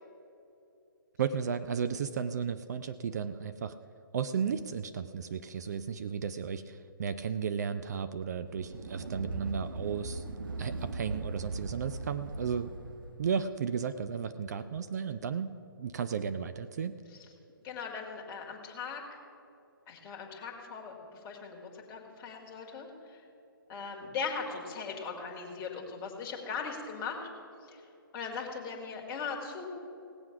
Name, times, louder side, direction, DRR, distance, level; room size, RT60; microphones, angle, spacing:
voice 1, 1.2-3.8 4.1-10.2 10.6-12.7 13.2-17.0, right 7 dB, 50° right, 12 dB, 0.5 m, -34 dB
sound 1, 8.4-13.3, right 3 dB, 65° right, 1.0 m, -40 dB
voice 2, 17.6-19.0 19.9-20.9 21.2-21.6 21.9-23.2 23.7-27.2 27.7-27.8 28.1-29.7, left 5 dB, 20° left, 0 dB, 1.9 m, -39 dB
18.0 x 7.6 x 5.8 m, 2.8 s
figure-of-eight pair, 140°, 12 cm